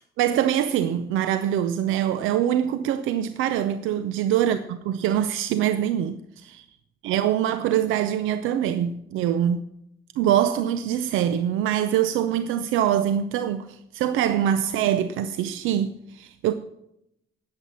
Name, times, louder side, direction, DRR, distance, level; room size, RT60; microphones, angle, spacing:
voice 1, 0.2-6.6 7.0-9.6 10.2-16.5, right 10 dB, 90° right, 0.6 m, -24 dB
11.0 x 7.7 x 7.3 m
cardioid pair, 90°, 20 cm